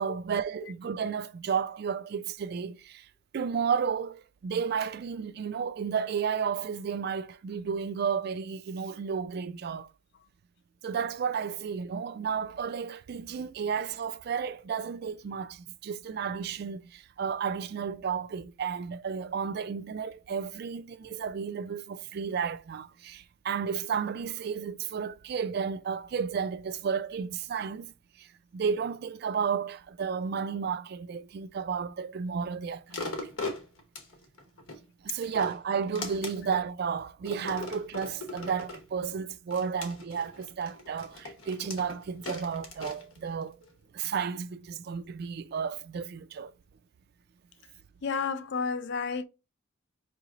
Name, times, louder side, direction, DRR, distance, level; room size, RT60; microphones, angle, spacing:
voice 1, 0.0-3.1 3.3-9.9 10.8-27.9 28.2-28.3 28.5-33.3 35.0-43.5 43.9-46.5, right 6 dB, 50° right, 0.3 m, -32 dB
sound 1, 32.9-34.8 35.2-36.6 37.3-38.9 39.5-43.7 44.2-44.3, left 2 dB, 80° left, 1.0 m, -40 dB
voice 2, 48.0-49.2, left 5 dB, 55° left, 0.4 m, -31 dB
4.8 x 3.0 x 2.4 m
head